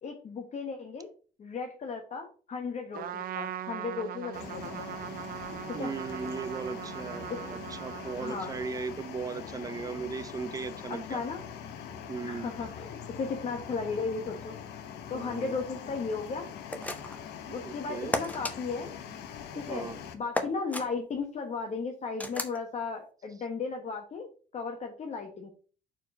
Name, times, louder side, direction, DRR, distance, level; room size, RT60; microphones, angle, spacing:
voice 1, 0.0-1.1 1.4-4.9 5.8-5.9 7.3-7.4 8.2-8.5 10.9-11.4 12.2-14.6 15.1-16.5 17.5-18.9 19.5-24.3 24.5-25.5, left 4 dB, 40° left, 3 dB, 1.1 m, -35 dB
Trumpet, 2.9-9.1, right 11 dB, 60° right, 0.6 m, -40 dB
sound 1, 4.3-20.1, left 8 dB, 80° left, 1.1 m, -43 dB
voice 2, 5.7-11.2 12.1-12.5 15.1-15.5 17.6-18.1 19.7-20.0, right 5 dB, 20° right, 12 dB, 0.6 m, -37 dB
sound 2, 16.7-17.3 18.1-18.6 20.3-20.9 22.2-22.6, left 1 dB, 10° left, 0.9 m, -33 dB
4.6 x 4.5 x 6.0 m, 0.39 s
cardioid pair, 110°, 17 cm